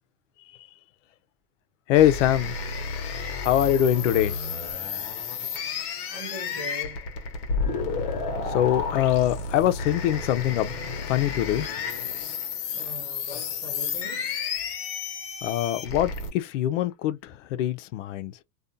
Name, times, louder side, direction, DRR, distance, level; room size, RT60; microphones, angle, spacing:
voice 1, 1.9-2.5 3.4-4.4 8.5-10.7 11.1-11.7 15.4-18.3, left 12 dB, 60° left, 0.5 m, -23 dB
sound 1, 1.9-16.3, left 5 dB, 45° left, 0.9 m, -31 dB
voice 2, 6.1-7.1 12.7-14.4, equal, 5° right, 0.4 m, -41 dB
2.5 x 2.2 x 2.5 m
supercardioid pair, 150°, 43 cm